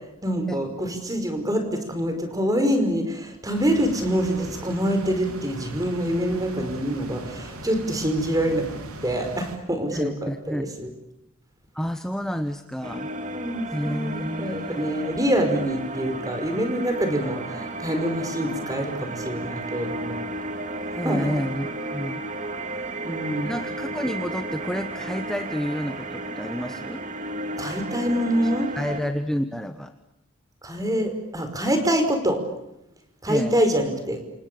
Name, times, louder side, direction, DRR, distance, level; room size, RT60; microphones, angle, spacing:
voice 1, 0.2-8.7 9.0-10.9 12.9-20.2 21.0-21.3 23.0-23.5 27.6-28.7 30.6-32.4 33.2-34.2, equal, 15° right, 6 dB, 5.2 m, -25 dB
sound 1, 3.5-9.6, right 1 dB, 80° right, 3.7 m, -39 dB
voice 2, 9.9-10.7 11.7-13.1 13.7-15.1 20.9-21.7 21.9-22.2 23.4-27.0 28.4-29.9 33.3-33.6, equal, 5° left, 7 dB, 1.2 m, -30 dB
sound 2, 12.8-29.0, right 2 dB, 35° right, 2.6 m, -33 dB
28.5 x 28.0 x 7.0 m, 0.88 s
head